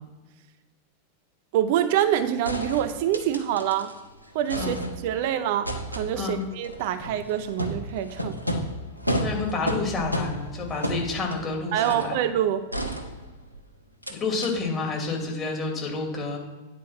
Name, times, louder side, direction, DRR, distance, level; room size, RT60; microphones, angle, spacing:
voice 1, 1.5-3.9 4.3-8.4 11.7-12.7, right 10 dB, 50° right, 10 dB, 0.5 m, -26 dB
sound 1, 2.0-2.1 2.4-4.0 4.3-5.2 5.6-12.2 12.7-13.6 14.0-14.1 14.4-14.5, equal, 90° right, 1.0 m, -32 dB
voice 2, 9.2-12.2 14.1-16.4, left 3 dB, 25° left, 0 dB, 2.5 m, -29 dB
9.5 x 4.6 x 5.9 m, 1.3 s
figure-of-eight pair, 90°, 0 cm